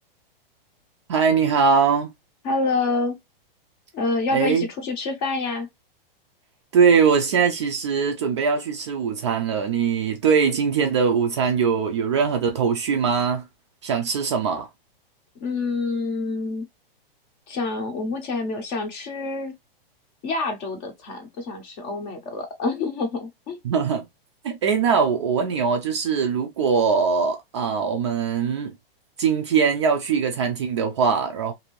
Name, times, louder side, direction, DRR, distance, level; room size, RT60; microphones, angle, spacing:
voice 1, 1.1-2.1 4.3-4.7 6.7-13.5 13.8-14.7 23.6-24.1 24.4-28.7 29.2-31.5, right 6 dB, 30° right, 0.4 m, -21 dB
voice 2, 2.4-3.2 3.9-5.7 15.4-16.7 17.5-19.5 20.2-23.6, left 3 dB, 25° left, 0.6 m, -27 dB
2.6 x 2.5 x 3.0 m
hypercardioid pair, 165°, 29 cm